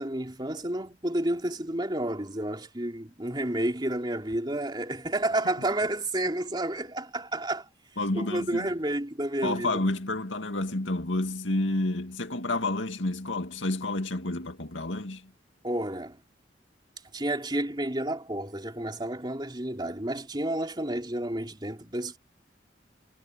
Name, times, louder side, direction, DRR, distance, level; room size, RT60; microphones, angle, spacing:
voice 1, 0.0-7.7 8.1-9.8 15.6-16.2 17.1-22.2, right 1 dB, 25° right, 3.5 m, -30 dB
voice 2, 8.0-8.7 9.4-15.3, left 2 dB, 90° left, 2.3 m, -30 dB
head